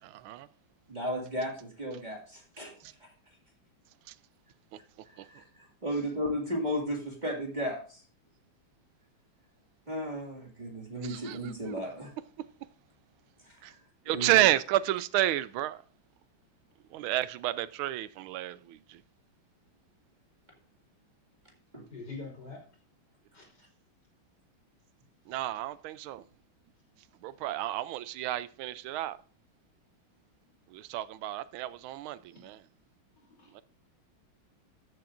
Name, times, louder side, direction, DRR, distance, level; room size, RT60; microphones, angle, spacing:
voice 1, 0.0-0.5 2.8-2.9 4.1-4.2 4.7-4.8 5.2-5.3 11.0-11.5 12.4-12.5 13.6-13.7 14.1-15.8 16.9-19.0 25.3-26.2 27.2-29.2 30.7-32.6 33.5-33.6, right 14 dB, 85° right, 1.4 m, -31 dB
voice 2, 0.9-2.8 5.1-8.0 9.9-12.1 13.4-13.6 14.1-14.5 21.7-21.9, equal, 20° right, 2.0 m, -35 dB
voice 3, 21.9-22.6 23.3-23.6 33.2-33.6, left 3 dB, 55° left, 3.8 m, -44 dB
14.0 x 7.7 x 2.5 m
omnidirectional pair, 2.2 m